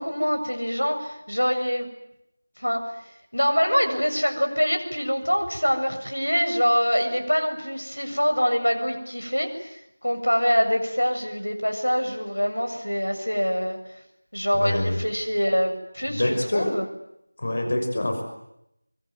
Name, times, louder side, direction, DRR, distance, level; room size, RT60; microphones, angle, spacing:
voice 1, 0.0-1.9 2.6-2.9 3.3-13.8 14.3-16.9, equal, 90° left, 5 dB, 7.5 m, -24 dB
voice 2, 14.5-15.0 16.1-16.7 17.4-18.2, left 1 dB, 40° left, 4 dB, 6.3 m, -25 dB
25.5 x 24.0 x 9.7 m, 0.81 s
figure-of-eight pair, 170°, 0 cm